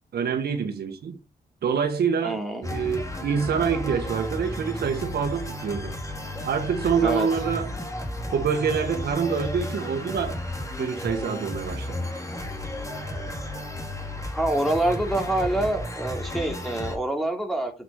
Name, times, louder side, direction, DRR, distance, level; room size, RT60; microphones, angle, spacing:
voice 1, 0.1-1.2 1.6-5.9 6.4-7.7 8.3-10.4 10.8-12.1, right 6 dB, 75° right, 1.5 m, -26 dB
voice 2, 2.2-2.6 7.0-7.3 14.3-17.7, right 1 dB, ahead, 2.7 m, -26 dB
sound 1, 2.6-17.0, left 1 dB, 20° left, 2.7 m, -33 dB
8.1 x 6.1 x 4.8 m
cardioid pair, 70°, 16 cm